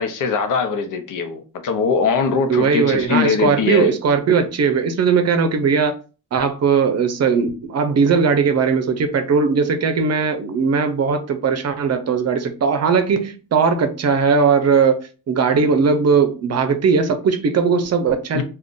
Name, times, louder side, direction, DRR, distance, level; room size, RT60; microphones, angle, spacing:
voice 1, 0.0-3.9 18.3-18.4, left 5 dB, 70° left, 0.7 m, -21 dB
voice 2, 2.5-6.0 6.3-18.4, right 5 dB, 50° right, 0.6 m, -18 dB
2.5 x 2.3 x 3.6 m
cardioid pair, 105°, 32 cm